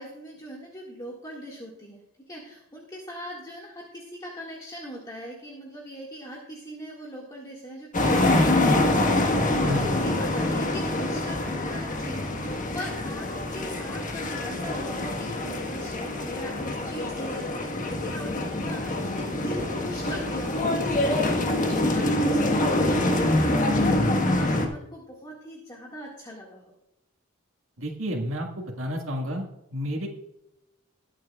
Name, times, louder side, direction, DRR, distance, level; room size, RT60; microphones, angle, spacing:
voice 1, 0.0-2.0 2.3-18.3 18.6-26.7, equal, 20° left, -3 dB, 1.9 m, -40 dB
sound 1, 7.9-24.7, left 1 dB, 40° left, 1.4 m, -25 dB
voice 2, 9.6-10.0 27.8-30.1, equal, 80° right, 0 dB, 1.7 m, -31 dB
21.0 x 7.6 x 2.4 m, 0.88 s
head